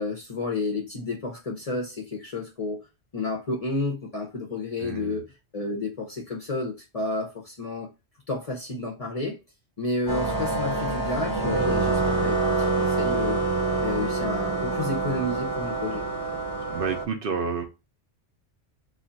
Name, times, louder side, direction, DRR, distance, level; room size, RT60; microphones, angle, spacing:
voice 1, 0.0-2.9 3.1-7.9 8.3-9.4 9.8-13.4 13.7-16.0, left 2 dB, 45° left, 0.5 m, -31 dB
voice 2, 4.8-5.2 16.7-17.6, right 5 dB, 60° right, 0.7 m, -29 dB
sound 1, 10.1-17.1, right 3 dB, 20° right, 0.7 m, -26 dB
2.4 x 2.3 x 3.8 m
omnidirectional pair, 1.1 m